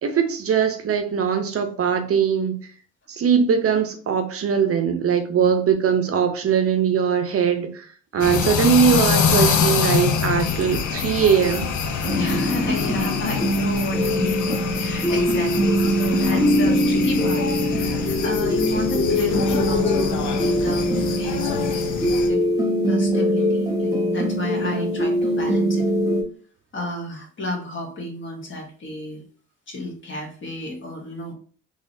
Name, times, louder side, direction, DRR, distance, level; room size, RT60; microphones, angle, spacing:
voice 1, 0.0-2.6 3.1-7.8 8.1-11.7 24.6-24.9, right 7 dB, 50° right, 6 dB, 0.7 m, -21 dB
sound 1, 8.2-22.3, left 6 dB, 75° left, 0.6 m, -25 dB
sound 2, 12.0-26.2, equal, 10° right, 1.2 m, -22 dB
voice 2, 12.1-22.0 22.3-22.4 22.9-25.8 26.7-29.2 29.7-31.3, left 2 dB, 40° left, -1 dB, 1.5 m, -31 dB
3.7 x 3.2 x 2.6 m, 0.43 s
cardioid pair, 90°, 30 cm